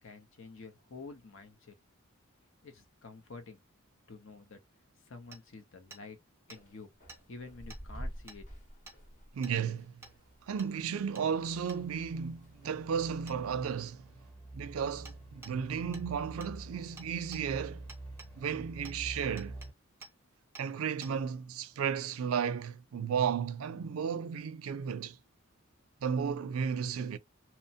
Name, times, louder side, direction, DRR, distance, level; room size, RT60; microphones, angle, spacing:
voice 1, 0.0-1.7 2.6-3.6 4.1-4.6 5.1-6.2 6.5-6.9 7.3-8.4, left 3 dB, 65° left, 0.7 m, -49 dB
Hammer, 5.3-5.4 5.9-6.0 6.5-6.6 7.1-7.2 7.7-7.8 8.3-8.4 8.9-9.0 9.4-9.6 10.0-10.1 10.6-10.7 11.1-11.3 11.7-11.8 13.3-13.4 15.0-15.2 15.4-15.6 15.9-16.1 16.4-16.5 17.0-17.4 17.9-18.3 18.8-19.0 19.4-19.7 20.0-20.1 20.5-20.7 21.0-21.1, right 3 dB, 10° right, 0.5 m, -51 dB
sound 1, 6.6-11.3 11.6-12.8, equal, 40° left, 0.9 m, -47 dB
voice 2, 9.3-10.0 10.4-14.1 14.5-17.9 18.4-19.6 20.6-25.2 26.0-27.2, right 7 dB, 85° right, 0.4 m, -34 dB
sound 2, 10.1-19.7, right 2 dB, 5° left, 1.0 m, -48 dB
2.9 x 2.1 x 2.7 m
head